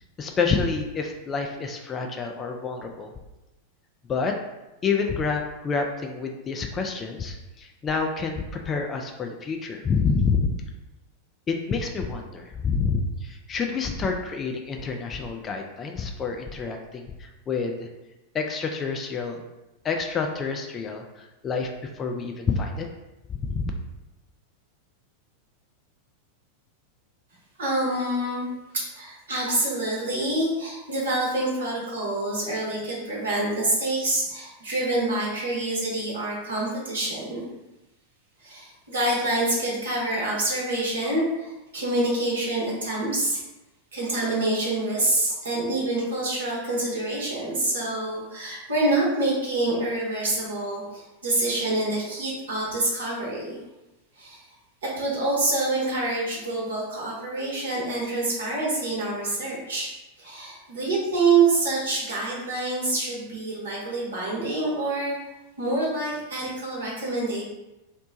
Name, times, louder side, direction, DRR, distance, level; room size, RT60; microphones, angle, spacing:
voice 1, 0.2-3.1 4.1-4.4 4.8-10.5 11.5-17.9 18.3-19.4 19.8-21.7 22.0-22.9 23.3-23.7, left 5 dB, 25° left, 3 dB, 0.3 m, -28 dB
voice 2, 27.6-28.4 28.7-37.5 38.4-43.4 43.9-53.6 54.2-54.4 54.8-59.9 60.2-65.1 65.6-67.4, right 2 dB, 65° right, -4 dB, 1.0 m, -26 dB
2.9 x 2.1 x 3.8 m, 0.99 s
figure-of-eight pair, 90°, 0 cm